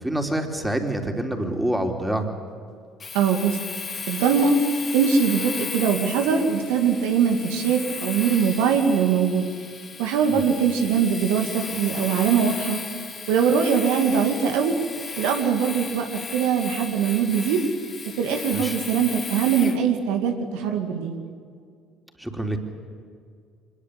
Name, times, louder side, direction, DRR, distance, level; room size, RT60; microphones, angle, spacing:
voice 1, 0.0-2.3 10.3-10.4 18.5-18.8 22.2-22.6, right 1 dB, 5° right, 4 dB, 4.1 m, -26 dB
Domestic sounds home sounds, 3.0-19.8, left 5 dB, 40° left, 2.8 m, -35 dB
voice 2, 3.1-3.6 4.1-4.6 4.9-9.5 10.0-12.8 13.3-14.8 15.2-16.1 16.3-17.6 18.1-21.1, right 6 dB, 75° right, 4 dB, 2.4 m, -22 dB
25.0 x 21.0 x 8.5 m, 2.2 s
hypercardioid pair, 60°, 0 cm